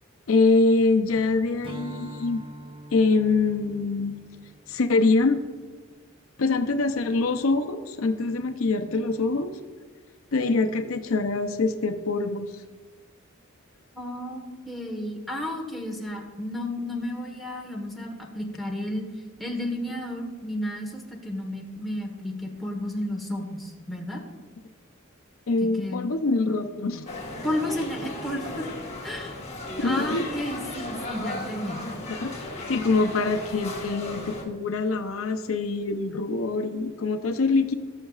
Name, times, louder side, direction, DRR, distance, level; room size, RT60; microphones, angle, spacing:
voice 1, 0.3-2.4 2.9-4.1 4.7-5.4 6.4-9.5 10.3-12.5 25.5-27.1 29.8-30.3 31.9-32.3 32.7-37.7, left 3 dB, 80° left, 6 dB, 0.6 m, -24 dB
Strum, 1.6-6.3, right 1 dB, 25° right, 0.6 m, -45 dB
voice 2, 13.9-19.1 19.4-24.2 25.6-26.0 27.4-28.7 29.0-29.4 29.8-31.8, left 1 dB, ahead, -1 dB, 1.2 m, -32 dB
sound 1, 27.1-34.4, left 2 dB, 30° left, 1.4 m, -36 dB
19.0 x 6.5 x 2.4 m, 1.4 s
head